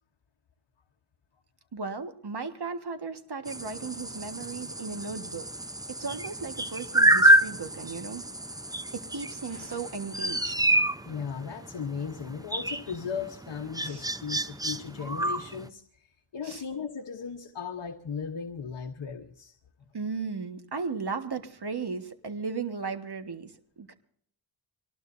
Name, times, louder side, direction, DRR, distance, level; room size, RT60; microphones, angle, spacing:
voice 1, 1.7-5.5 5.9-8.2 8.9-10.5 13.8-14.0 16.4-16.6 19.9-23.9, right 4 dB, 50° right, 7 dB, 1.6 m, -36 dB
sound 1, 3.5-15.7, right 1 dB, 10° right, 0.7 m, -28 dB
sound 2, 7.6-12.2, right 2 dB, 70° right, 7.2 m, -62 dB
voice 2, 11.0-19.5 19.8-19.9, left 6 dB, 60° left, 4 dB, 1.1 m, -37 dB
24.5 x 19.5 x 2.7 m, 0.64 s
cardioid pair, 60°, 49 cm